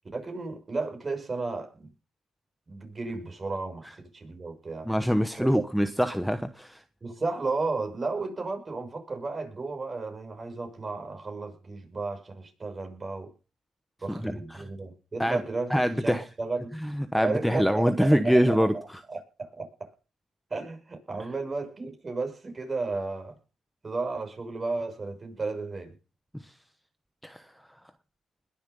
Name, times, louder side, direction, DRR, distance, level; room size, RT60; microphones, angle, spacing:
voice 1, 0.1-1.9 2.7-3.9 4.1-4.9 5.4-5.6 7.0-13.3 14.0-16.7 17.2-19.7 20.5-23.4 23.8-26.0, right 3 dB, 30° right, 6.0 m, -33 dB
voice 2, 4.9-6.8 14.2-14.7 15.2-15.4 15.7-16.2 16.8-18.7 27.2-27.4, equal, ahead, 1.0 m, -24 dB
21.0 x 7.4 x 5.5 m
cardioid pair, 90°, 0 cm